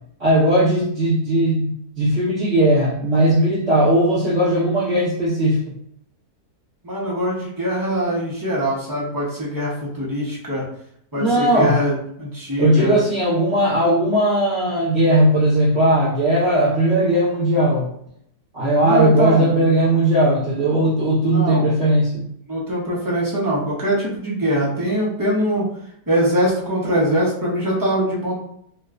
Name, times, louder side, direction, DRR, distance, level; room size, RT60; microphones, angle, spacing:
voice 1, 0.2-5.6 11.1-11.7 12.6-17.9 18.5-22.3, right 1 dB, 50° right, -13 dB, 1.4 m, -18 dB
voice 2, 6.8-10.6 11.1-13.0 18.8-19.5 21.2-21.7 22.5-25.7 26.1-28.3, equal, 35° right, -7 dB, 0.3 m, -22 dB
4.2 x 2.2 x 2.4 m, 0.70 s
omnidirectional pair, 1.8 m